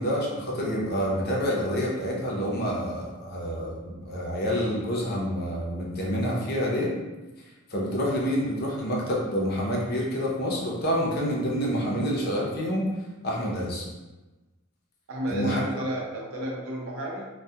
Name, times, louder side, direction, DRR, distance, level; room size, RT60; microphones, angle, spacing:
voice 1, 0.0-6.9 7.7-12.9 13.2-13.8 15.3-15.6, equal, 50° left, -3 dB, 0.6 m, -28 dB
voice 2, 15.1-17.3, equal, 85° right, -2 dB, 0.6 m, -32 dB
2.3 x 2.2 x 2.7 m, 1.1 s
head